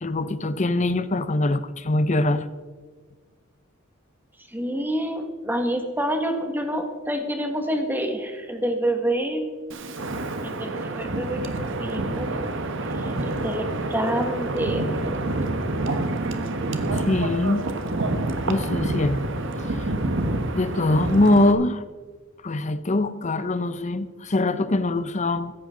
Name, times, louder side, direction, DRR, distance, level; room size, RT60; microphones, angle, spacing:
voice 1, 0.0-2.5 16.9-17.6 18.5-19.2 19.6-19.9 20.5-21.8 22.4-25.5, left 2 dB, 35° left, 13 dB, 0.8 m, -23 dB
voice 2, 4.5-9.5 10.4-12.3 12.9-14.9, right 1 dB, 10° right, 4 dB, 1.8 m, -27 dB
Wind, 9.7-21.5, right 2 dB, 65° right, 1.3 m, -27 dB
15.5 x 14.5 x 3.9 m, 1.5 s
head